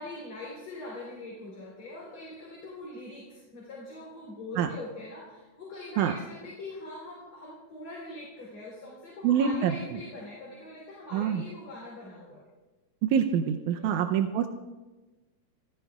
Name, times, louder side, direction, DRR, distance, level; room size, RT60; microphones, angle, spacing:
voice 1, 0.0-12.4 13.7-14.1, left 2 dB, 45° left, -5 dB, 4.8 m, -43 dB
voice 2, 9.2-9.7 11.1-11.4 13.0-14.5, right 8 dB, 90° right, 5 dB, 2.2 m, -25 dB
26.5 x 15.5 x 2.4 m, 1.2 s
omnidirectional pair, 3.4 m